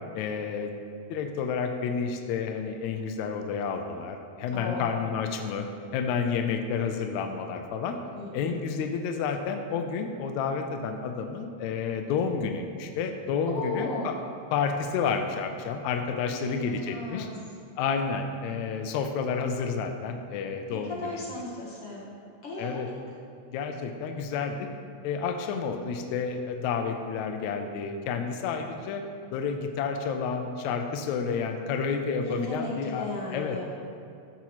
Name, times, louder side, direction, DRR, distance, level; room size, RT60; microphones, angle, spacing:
voice 1, 0.1-0.7 1.1-5.6 5.9-8.0 8.3-14.1 14.5-17.3 17.8-21.2 22.6-22.9 23.5-24.7 25.0-29.0 29.3-33.1 33.3-33.6, left 6 dB, 80° left, 4 dB, 1.7 m, -30 dB
voice 2, 4.5-5.1 8.1-8.6 13.5-14.1 16.3-17.3 20.7-22.1 22.4-22.8 32.2-33.6, left 2 dB, 60° left, -5 dB, 1.6 m, -36 dB
14.5 x 5.9 x 3.0 m, 2.5 s
omnidirectional pair, 3.8 m